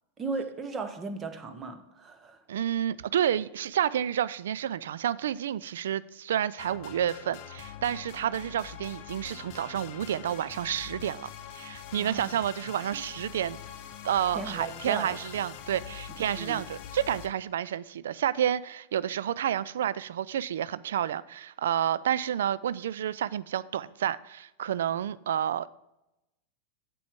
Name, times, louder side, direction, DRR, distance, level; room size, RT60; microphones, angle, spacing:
voice 1, 0.2-2.4 12.0-12.3 12.9-13.0 14.3-15.1 16.3-16.6, right 4 dB, 20° right, 8 dB, 1.0 m, -36 dB
voice 2, 2.5-13.6 14.0-25.7, right 10 dB, 60° right, 18 dB, 0.3 m, -30 dB
sound 1, 6.6-17.3, left 9 dB, 45° left, 0.7 m, -44 dB
8.4 x 7.6 x 3.6 m, 0.92 s
figure-of-eight pair, 90°, 0 cm